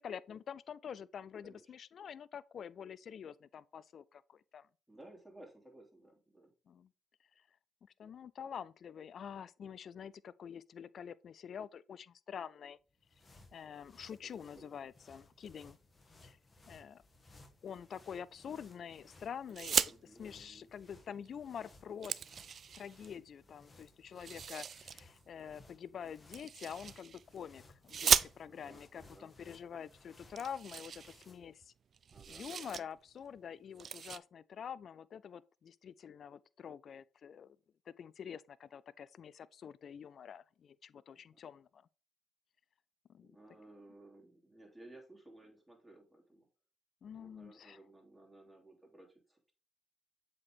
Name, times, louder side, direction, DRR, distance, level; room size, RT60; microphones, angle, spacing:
voice 1, 0.0-4.7 6.7-6.9 7.4-7.5 7.8-12.8 13.5-15.8 16.2-16.4 16.7-17.0 17.6-19.8 20.0-22.1 22.7-31.7 32.3-37.6 37.9-41.8 43.1-43.3 47.0-47.8, left 8 dB, 55° left, 0.4 m, -47 dB
voice 2, 4.9-6.5 14.5-14.7 19.8-20.7 28.5-29.3 32.1-32.8 41.1-41.4 43.2-46.5 47.1-49.5, right 1 dB, 5° right, 3.0 m, -58 dB
sound 1, 12.8-31.6, left 2 dB, 30° left, 1.9 m, -62 dB
sound 2, 19.5-19.9 21.3-21.4 21.7-23.1 24.2-25.0 26.3-27.2 27.9-28.8 29.6-29.7 30.0-30.1 30.4-31.7 31.9-32.8 33.2-33.4 33.8-34.2, right 7 dB, 50° right, 0.3 m, -35 dB
7.7 x 4.3 x 3.6 m
hypercardioid pair, 50°, 0 cm